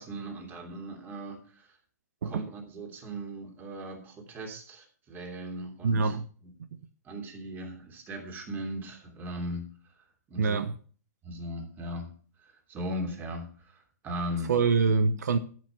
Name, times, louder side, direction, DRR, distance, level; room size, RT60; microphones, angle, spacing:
voice 1, 0.0-1.7 2.2-6.1 7.0-9.7 10.3-10.6 11.2-12.1 12.4-14.5, equal, 20° right, 3.1 m, -38 dB
voice 2, 5.8-6.2 10.4-10.7 14.5-15.4, right 4 dB, 75° right, 0.9 m, -25 dB
13.0 x 6.3 x 6.0 m
hypercardioid pair, 135°, 9 cm